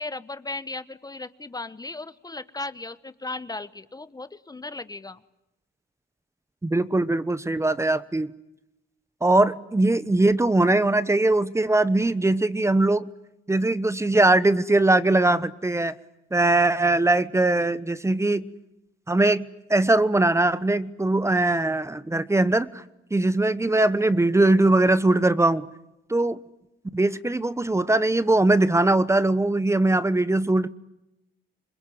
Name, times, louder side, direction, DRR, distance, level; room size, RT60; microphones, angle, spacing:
voice 1, 0.0-5.2, left 2 dB, 20° left, 14 dB, 1.0 m, -36 dB
voice 2, 6.6-8.3 9.2-13.0 13.5-15.9 16.3-18.5 19.1-22.8 23.1-25.6 26.1-26.4 26.9-30.7, right 2 dB, 15° right, 15 dB, 1.1 m, -21 dB
27.5 x 21.5 x 9.3 m, 0.88 s
cardioid pair, 90°, 20 cm